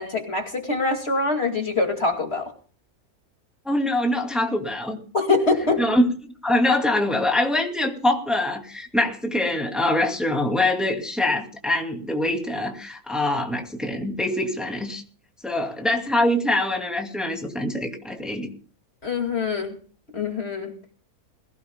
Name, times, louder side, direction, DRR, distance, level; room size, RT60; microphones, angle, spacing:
voice 1, 0.0-2.5 5.1-5.8 19.0-19.8 20.1-20.7, left 3 dB, 40° left, 3 dB, 2.6 m, -24 dB
voice 2, 3.7-5.0 5.8-6.1 6.4-15.0 15.4-18.5, left 1 dB, ahead, 2 dB, 2.4 m, -24 dB
21.5 x 16.5 x 2.3 m, 0.41 s
omnidirectional pair, 1.6 m